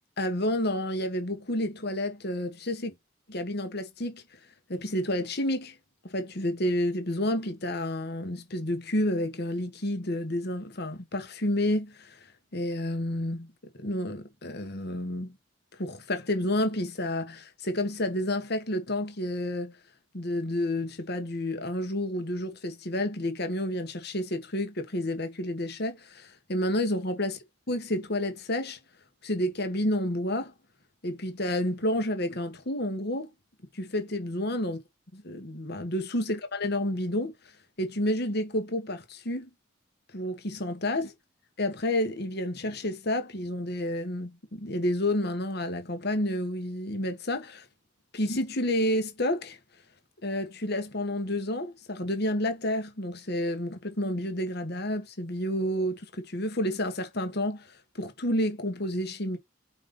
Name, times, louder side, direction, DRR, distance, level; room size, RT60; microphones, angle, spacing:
voice 1, 0.2-2.9 3.3-4.2 4.7-5.7 6.0-12.2 12.5-13.5 13.8-15.4 15.8-19.8 20.1-27.4 27.7-28.8 29.2-30.5 31.0-33.3 33.7-34.8 35.1-37.3 37.8-39.5 40.1-41.0 41.6-47.7 48.1-49.6 50.2-59.4, left 1 dB, 55° left, 1.4 m, -30 dB
5.3 x 4.7 x 3.9 m
head